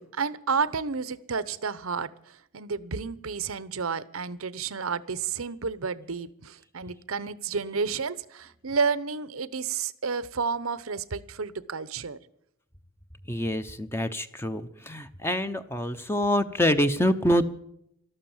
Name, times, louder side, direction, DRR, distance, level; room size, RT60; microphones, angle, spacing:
voice 1, 0.0-12.2, right 5 dB, 85° right, 17 dB, 0.9 m, -31 dB
voice 2, 13.3-17.5, equal, 10° left, 9 dB, 0.8 m, -26 dB
13.5 x 13.0 x 7.2 m, 0.73 s
head